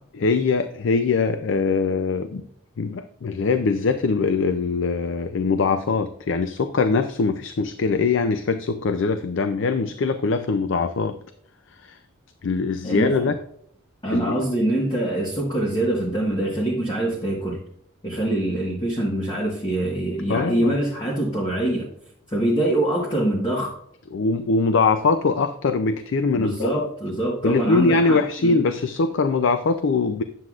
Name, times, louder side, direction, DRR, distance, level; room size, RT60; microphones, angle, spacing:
voice 1, 0.2-2.5 2.8-11.2 11.8-12.0 12.4-13.3 14.1-14.3 20.3-20.8 24.1-26.7 27.4-30.2, left 4 dB, 65° left, 9 dB, 0.4 m, -22 dB
voice 2, 12.8-13.3 14.0-17.6 18.0-21.9 22.3-23.7 26.3-28.6, right 1 dB, 25° left, -3 dB, 1.3 m, -24 dB
9.6 x 7.6 x 2.4 m, 0.67 s
head